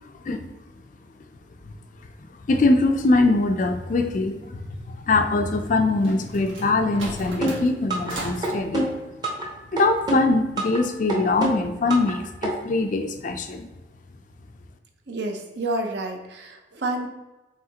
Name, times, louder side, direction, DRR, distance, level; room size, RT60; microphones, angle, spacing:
voice 1, 2.5-4.6 4.9-9.1 9.7-13.7, left 3 dB, 40° left, 6 dB, 0.4 m, -22 dB
sound 1, 5.6-8.6, right 2 dB, 85° right, 1.4 m, -37 dB
sound 2, 7.4-8.1 8.4-9.5 9.8-10.8 11.1-12.1 12.4-12.5, right 1 dB, 20° right, 0.8 m, -26 dB
voice 2, 15.1-17.1, right 2 dB, 60° right, 3 dB, 0.6 m, -29 dB
4.8 x 3.5 x 2.8 m, 1.1 s
head